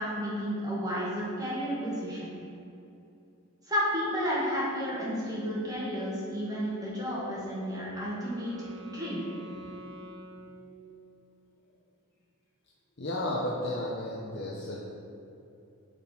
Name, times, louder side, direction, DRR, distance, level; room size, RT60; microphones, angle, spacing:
voice 1, 0.0-2.3 3.7-8.5 8.8-9.2, equal, 15° right, -7 dB, 1.6 m, -32 dB
Wind instrument woodwind instrument, 7.3-11.2, equal, 55° right, 0.8 m, -48 dB
voice 2, 13.0-14.8, left 1 dB, 50° left, -5 dB, 0.7 m, -33 dB
9.2 x 4.3 x 4.3 m, 2.7 s
head